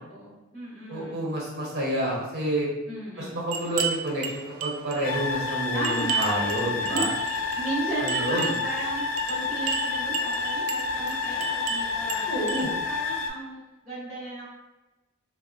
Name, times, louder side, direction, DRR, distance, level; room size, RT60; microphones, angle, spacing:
voice 1, 0.0-1.3 2.9-3.5 5.7-13.6 13.8-14.5, right 1 dB, 15° left, -14 dB, 0.9 m, -35 dB
voice 2, 0.9-2.7 3.2-7.1 8.0-8.5 12.3-12.7, right 1 dB, 50° right, -4 dB, 0.7 m, -29 dB
sound 1, 3.5-12.6, right 6 dB, 90° right, 0.4 m, -34 dB
sound 2, 5.0-13.3, left 5 dB, 65° left, 0.4 m, -29 dB
3.4 x 2.0 x 2.5 m, 1.1 s
head